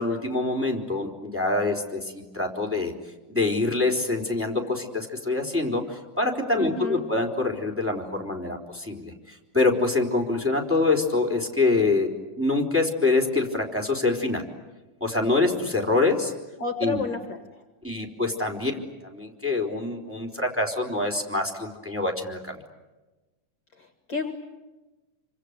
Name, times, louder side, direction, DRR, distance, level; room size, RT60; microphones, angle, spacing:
voice 1, 0.0-2.9 3.3-12.1 12.4-14.4 15.0-16.3 16.8-17.0 17.8-22.6, left 3 dB, 5° right, 2 dB, 3.6 m, -25 dB
voice 2, 6.6-7.1 16.6-17.6 23.8-24.3, left 3 dB, 45° left, 6 dB, 2.2 m, -31 dB
27.5 x 25.5 x 8.2 m, 1.1 s
omnidirectional pair, 3.4 m